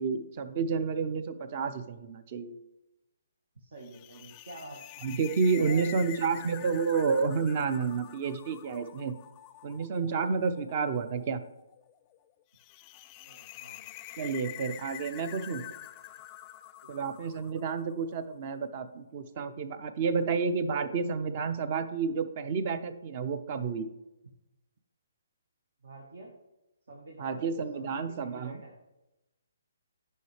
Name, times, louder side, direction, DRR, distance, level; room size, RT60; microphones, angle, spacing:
voice 1, 0.0-2.6 5.0-9.1 9.6-11.4 14.2-15.6 16.9-23.9 27.2-28.6, right 5 dB, 40° right, 11 dB, 0.6 m, -30 dB
voice 2, 3.5-4.8 5.5-6.7 13.2-13.9 15.2-15.7 25.8-26.3 26.9-27.4 27.7-28.7, right 2 dB, 75° right, -1 dB, 1.4 m, -47 dB
sound 1, 3.8-18.1, left 15 dB, 25° left, 0.3 m, -47 dB
9.3 x 5.6 x 3.3 m, 0.96 s
hypercardioid pair, 145°, 0 cm